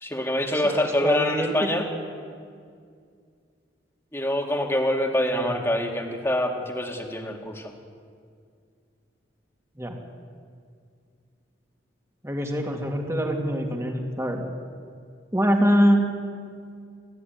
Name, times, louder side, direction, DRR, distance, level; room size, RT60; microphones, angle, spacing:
voice 1, 0.0-1.9 4.1-7.7, left 1 dB, 15° left, 2 dB, 2.2 m, -25 dB
voice 2, 0.6-1.8 5.3-5.5 9.8-10.0 12.2-14.4 15.3-16.0, equal, 15° right, 2 dB, 2.6 m, -24 dB
29.5 x 13.5 x 9.5 m, 2.2 s
head